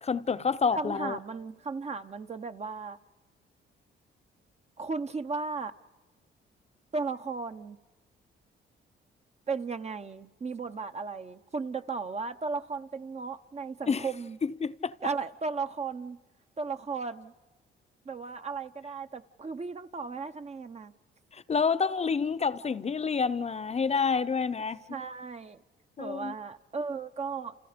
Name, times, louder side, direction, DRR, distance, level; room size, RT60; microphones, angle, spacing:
voice 1, 0.0-1.2 13.9-14.1 14.4-14.9 21.3-24.8 26.0-26.3, left 5 dB, 35° left, 0.8 m, -28 dB
voice 2, 0.7-3.0 4.8-5.7 6.9-7.8 9.5-14.4 15.0-16.2 16.6-17.3 18.0-20.9 24.9-25.6 26.0-27.5, right 4 dB, 35° right, 0.9 m, -35 dB
29.5 x 28.5 x 5.2 m
cardioid pair, 90°, 20 cm